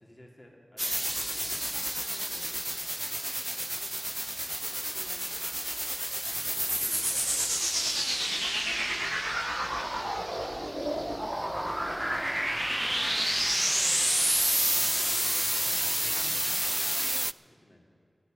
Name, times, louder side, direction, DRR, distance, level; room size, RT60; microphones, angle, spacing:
voice 1, 0.0-2.8 4.7-5.4 6.4-7.3 7.7-9.3 10.1-12.0 12.3-13.3 15.0-16.0 16.8-17.1 17.3-17.9, left 1 dB, 30° left, -1 dB, 2.7 m, -55 dB
sound 1, 0.8-17.3, equal, 10° right, 0.3 m, -29 dB
11.5 x 10.0 x 9.1 m, 2.6 s
cardioid pair, 40°, 0 cm